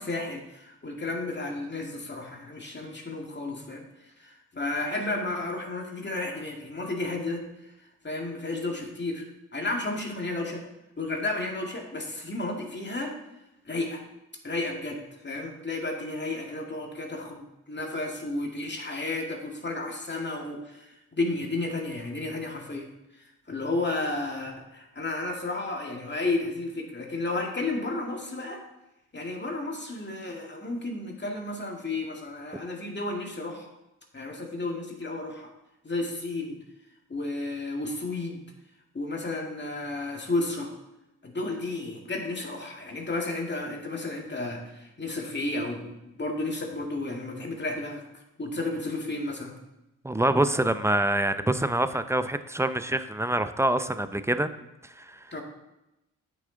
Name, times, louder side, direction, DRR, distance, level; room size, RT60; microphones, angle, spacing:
voice 1, 0.0-3.8 4.2-7.4 8.0-9.2 9.5-10.6 11.0-13.1 13.7-14.0 14.4-22.9 23.5-28.6 29.1-33.7 34.1-35.5 35.8-36.6 37.1-38.4 38.9-40.7 41.2-45.9 46.2-48.0 48.4-49.5 55.3-55.4, left 2 dB, 30° left, 1 dB, 2.1 m, -32 dB
voice 2, 50.0-54.5 55.0-55.2, right 1 dB, 10° right, 11 dB, 0.6 m, -25 dB
9.2 x 6.2 x 3.9 m, 0.92 s
supercardioid pair, 50°, 36 cm